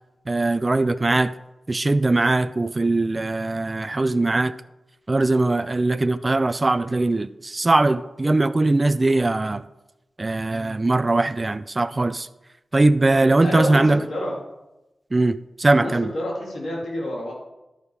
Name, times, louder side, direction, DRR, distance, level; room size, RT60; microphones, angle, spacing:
voice 1, 0.3-1.3 1.7-4.5 5.1-9.6 10.2-12.3 12.7-14.0 15.1-16.1, right 2 dB, 35° right, 13 dB, 0.4 m, -20 dB
voice 2, 13.4-14.3 15.7-17.3, left 1 dB, 80° left, -3 dB, 2.7 m, -28 dB
11.5 x 5.1 x 4.7 m, 0.97 s
cardioid pair, 45°, 0 cm